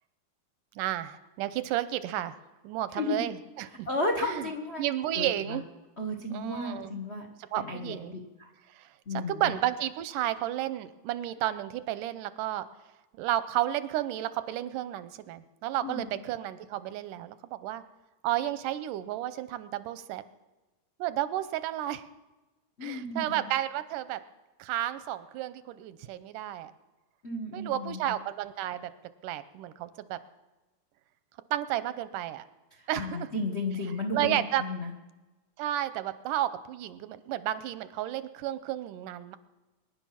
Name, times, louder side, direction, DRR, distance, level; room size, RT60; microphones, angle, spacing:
voice 1, 0.8-2.3 2.6-3.9 4.2-4.5 4.8-5.6 6.3-6.9 7.5-8.1 8.7-8.9 9.3-12.7 13.1-17.8 18.2-20.2 21.0-22.1 22.8-24.2 24.6-26.7 27.5-28.9 29.2-30.2 31.5-32.5 32.9-33.3 34.1-34.6 35.6-39.4, right 13 dB, 85° right, 13 dB, 2.3 m, -32 dB
voice 2, 3.9-4.8 5.1-5.6 6.0-7.3 7.6-8.5 9.1-9.5 15.8-16.2 22.8-23.5 27.2-28.1 32.7-34.9, left 2 dB, 75° left, 2 dB, 0.6 m, -33 dB
24.0 x 10.5 x 5.8 m, 1.1 s
omnidirectional pair, 3.7 m